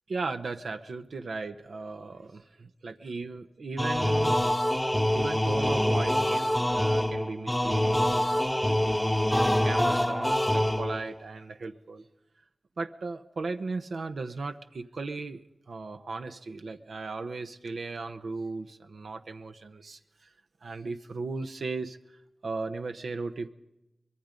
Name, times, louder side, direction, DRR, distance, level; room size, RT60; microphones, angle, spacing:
voice 1, 0.1-4.4 5.1-12.1 12.8-15.4 15.7-20.3 20.6-22.2 22.4-23.5, right 3 dB, 80° right, 7 dB, 1.0 m, -37 dB
sound 1, 3.8-11.2, left 1 dB, 10° left, 0.9 m, -25 dB
24.0 x 21.5 x 5.3 m, 0.88 s
cardioid pair, 60°, 0 cm